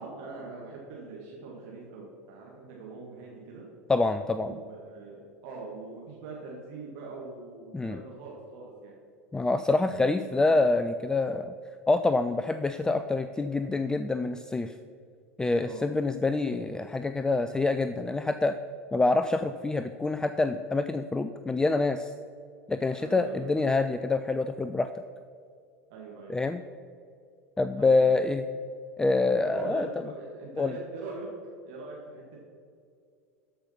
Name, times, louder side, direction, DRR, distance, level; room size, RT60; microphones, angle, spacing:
voice 1, 0.0-3.6 4.4-8.9 10.2-10.7 15.6-15.9 23.0-23.6 25.9-26.4 27.8-28.1 29.4-31.3 31.7-32.4, right 3 dB, 55° right, -3 dB, 2.0 m, -42 dB
voice 2, 3.9-4.5 7.7-8.0 9.3-11.5 11.9-14.7 15.4-18.6 18.9-22.1 22.7-24.9 26.3-26.6 27.6-28.4 29.0-29.9 30.6-30.7, left 3 dB, 10° left, 10 dB, 0.4 m, -26 dB
13.0 x 5.6 x 5.8 m, 2.3 s
figure-of-eight pair, 80°, 8 cm